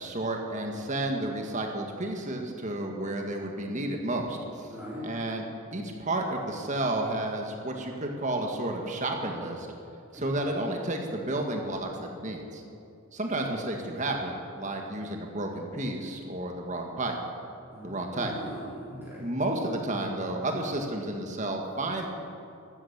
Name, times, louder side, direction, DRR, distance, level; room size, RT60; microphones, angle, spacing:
voice 1, 0.0-4.7 5.0-5.4 5.7-9.7 10.1-12.6 13.1-17.2 17.8-18.3 19.2-22.1, right 1 dB, 35° right, 2 dB, 1.8 m, -31 dB
voice 2, 4.7-5.0 10.1-10.2 17.7-19.2, equal, 10° right, -10 dB, 4.0 m, -41 dB
14.0 x 12.5 x 7.3 m, 2.6 s
head